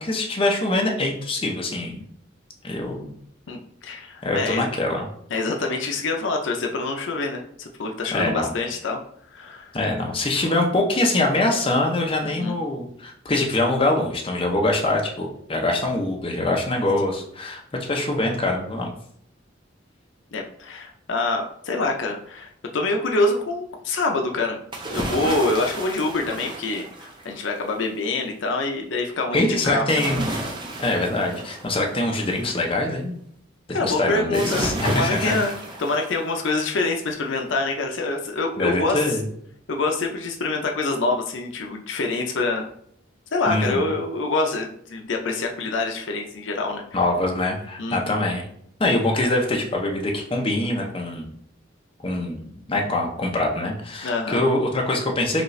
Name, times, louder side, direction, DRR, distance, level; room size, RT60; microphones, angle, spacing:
voice 1, 0.0-2.0 2.6-3.2 4.2-5.1 8.1-8.5 9.7-18.9 29.3-30.4 30.8-33.1 33.8-35.4 38.6-39.2 43.5-43.9 46.9-48.4 48.8-51.3 52.0-55.4, left 2 dB, 30° left, 0 dB, 0.6 m, -24 dB
voice 2, 3.5-4.7 5.3-9.0 9.3-9.7 12.2-12.5 20.3-24.6 24.9-30.0 33.7-35.5 35.8-39.2 39.7-42.7 43.3-47.0 47.8-48.3 54.0-54.4, left 3 dB, 70° left, 3 dB, 0.5 m, -26 dB
sound 1, 24.7-27.5 29.9-32.5 34.3-36.6 37.0-37.1, right 1 dB, 25° right, 0.6 m, -32 dB
5.1 x 2.4 x 3.1 m, 0.68 s
head